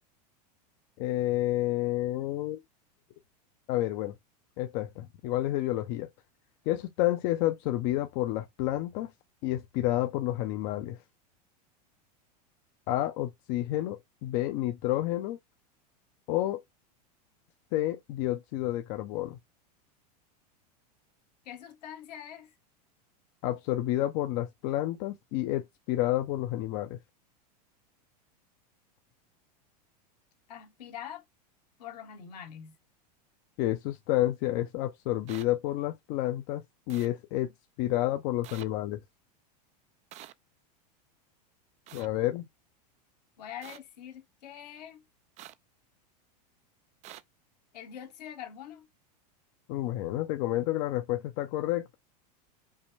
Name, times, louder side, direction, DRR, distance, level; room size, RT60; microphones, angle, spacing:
voice 1, 1.0-2.6 3.7-4.1 4.6-6.1 6.7-9.1 9.4-11.0 12.9-15.4 16.3-16.6 17.7-19.4 23.4-27.0 33.6-37.5 37.8-39.0 41.9-42.5 49.7-52.0, left 15 dB, 50° left, 0.6 m, -30 dB
voice 2, 21.4-22.6 30.5-31.2 31.8-32.8 43.4-45.0 47.7-48.9, left 9 dB, 75° left, 1.3 m, -44 dB
sound 1, 35.3-35.4 36.9-37.1 38.4-38.7 40.1-40.3 41.9-42.1 43.6-43.8 45.4-45.5 47.0-47.2, right 14 dB, 35° right, 0.4 m, -47 dB
5.4 x 2.2 x 3.2 m
hypercardioid pair, 110°, 21 cm